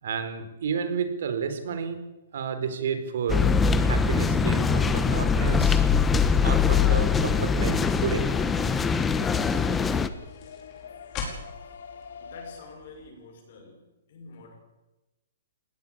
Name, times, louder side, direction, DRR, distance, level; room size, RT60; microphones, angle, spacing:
voice 1, 0.0-2.0 2.3-5.8 6.4-8.3 9.2-9.3, right 7 dB, 65° right, 10 dB, 4.1 m, -31 dB
sound 1, 3.3-10.1, left 5 dB, 10° left, 1.1 m, -22 dB
sound 2, 5.7-12.6, left 6 dB, 70° left, 3.2 m, -45 dB
sound 3, 6.0-13.1, left 5 dB, 25° left, 5.3 m, -44 dB
voice 2, 12.1-13.8 14.1-14.5, left 3 dB, 55° left, 0 dB, 6.5 m, -47 dB
20.0 x 17.5 x 8.7 m, 1.0 s
hypercardioid pair, 155°, 0 cm